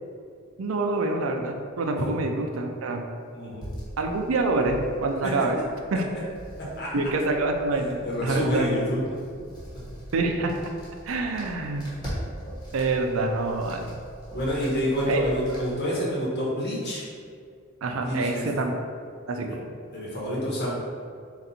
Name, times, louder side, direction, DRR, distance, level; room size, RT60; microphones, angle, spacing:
voice 1, 0.6-3.1 4.0-5.6 5.9-6.0 6.9-8.7 10.1-10.5 11.0-11.9 12.7-14.0 15.1-15.2 17.8-18.7 19.3-19.6, right 3 dB, 75° right, 3 dB, 0.5 m, -26 dB
voice 2, 3.3-3.7 5.2-5.5 6.6-6.9 7.8-9.5 9.8-9.9 14.3-17.0 18.0-18.5 19.9-20.7, equal, 55° left, -6 dB, 1.2 m, -28 dB
sound 1, 3.6-15.7, equal, 20° left, 1.2 m, -42 dB
4.0 x 2.5 x 4.1 m, 2.2 s
head